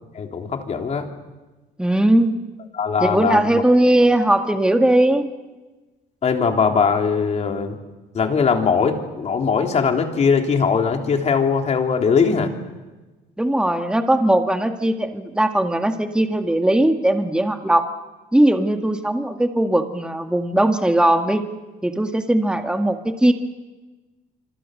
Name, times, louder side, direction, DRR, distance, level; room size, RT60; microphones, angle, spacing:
voice 1, 0.1-1.1 2.7-3.6 6.2-7.8 8.1-12.5, left 5 dB, 40° left, 3 dB, 3.4 m, -20 dB
voice 2, 1.8-2.3 3.0-5.3 13.4-17.8 18.3-21.5 21.8-23.3, right 1 dB, 5° right, 5 dB, 1.9 m, -19 dB
27.0 x 26.0 x 6.6 m, 1.2 s
cardioid pair, 110°, 17 cm